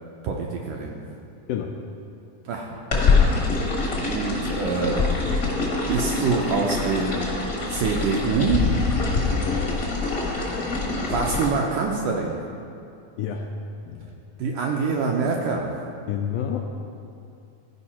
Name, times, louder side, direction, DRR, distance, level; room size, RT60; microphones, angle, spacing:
voice 1, 0.2-1.0 2.5-2.7 3.0-3.2 4.1-5.0 5.9-7.2 7.7-8.6 11.1-12.4 14.4-15.7, right 5 dB, 80° right, 0 dB, 1.9 m, -25 dB
sound 1, 2.9-11.5, left 4 dB, 55° left, 0.9 m, -24 dB
voice 2, 9.5-9.9 13.2-13.5 13.9-14.1 16.1-16.6, left 8 dB, 85° left, 2 dB, 1.9 m, -29 dB
14.5 x 5.2 x 4.3 m, 2.5 s
omnidirectional pair, 4.2 m